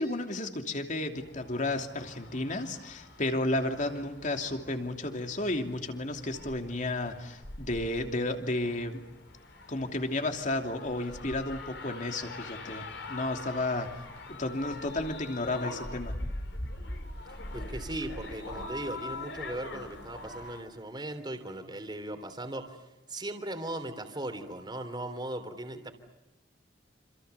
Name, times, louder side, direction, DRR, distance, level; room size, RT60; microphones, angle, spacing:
voice 1, 0.0-9.0 9.7-13.9 14.3-16.2, left 2 dB, 45° left, 5 dB, 3.0 m, -32 dB
sound 1, 1.2-20.6, left 2 dB, 75° left, 4.6 m, -43 dB
voice 2, 17.5-22.8 23.1-25.9, right 1 dB, 25° right, 7 dB, 3.2 m, -38 dB
27.5 x 27.5 x 6.9 m, 1.0 s
head